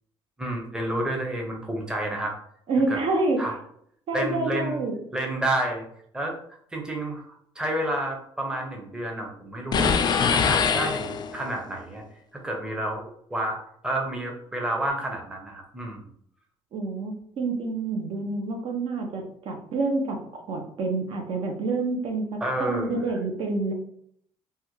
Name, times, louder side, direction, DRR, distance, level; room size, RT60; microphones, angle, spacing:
voice 1, 0.4-2.3 2.9-3.0 3.4-3.6 4.1-4.8 5.1-5.8 6.1-6.4 6.7-9.9 10.3-12.0 12.3-16.1 22.4-23.0, right 1 dB, 10° right, 1 dB, 0.7 m, -30 dB
voice 2, 2.7-3.4 4.1-5.0 16.7-22.3 22.6-23.7, right 3 dB, 60° right, 3 dB, 0.7 m, -27 dB
sound 1, 9.7-11.5, left 6 dB, 45° left, 0.4 m, -23 dB
3.4 x 2.2 x 3.0 m, 0.67 s
cardioid pair, 115°, 11 cm